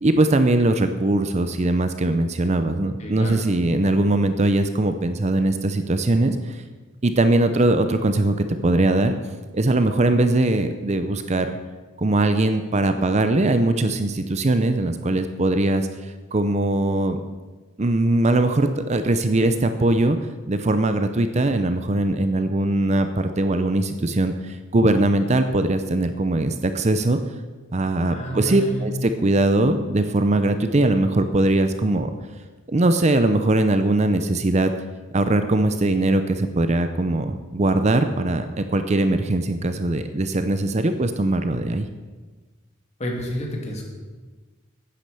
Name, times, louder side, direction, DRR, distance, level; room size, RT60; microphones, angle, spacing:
voice 1, 0.0-6.6 7.0-8.4 8.6-9.1 9.5-11.6 12.0-17.2 17.8-20.2 20.5-27.2 27.7-32.1 32.7-34.7 35.1-41.9, right 2 dB, 35° right, 9 dB, 0.6 m, -21 dB
voice 2, 3.0-3.4 28.1-28.9 43.0-43.8, equal, 35° left, 0 dB, 2.4 m, -29 dB
10.0 x 9.5 x 6.8 m, 1.3 s
head